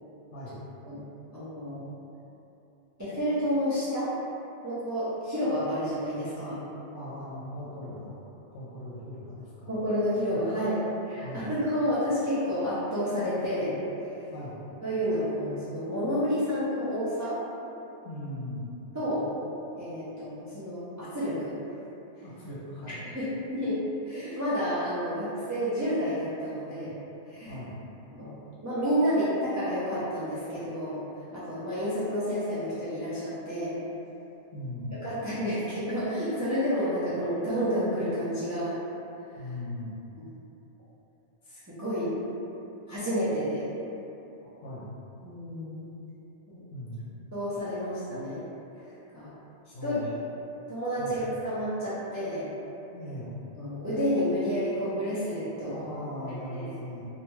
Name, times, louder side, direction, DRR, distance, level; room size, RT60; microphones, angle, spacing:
voice 1, 1.3-1.8 3.0-4.1 4.6-6.6 9.7-13.7 14.8-17.4 18.9-19.3 19.7-21.6 22.9-26.9 27.3-27.5 28.1-28.3 28.6-31.0 31.3-33.7 34.9-38.8 41.5-42.2 42.9-43.6 45.2-45.9 46.5-46.6 47.3-48.5 49.1-49.3 49.8-50.1 50.7-52.5 53.5-55.8 56.5-56.7, equal, 30° right, -12 dB, 0.3 m, -30 dB
voice 2, 6.9-9.7 10.3-10.4 11.2-11.5 14.3-14.6 18.0-18.7 22.2-23.1 27.4-27.8 34.5-35.0 39.4-40.0 44.6-45.0 46.7-47.0 49.7-50.3 51.0-51.3 52.9-53.4 55.7-57.1, left 1 dB, 85° left, -8 dB, 0.9 m, -39 dB
2.6 x 2.2 x 3.0 m, 2.9 s
omnidirectional pair, 1.2 m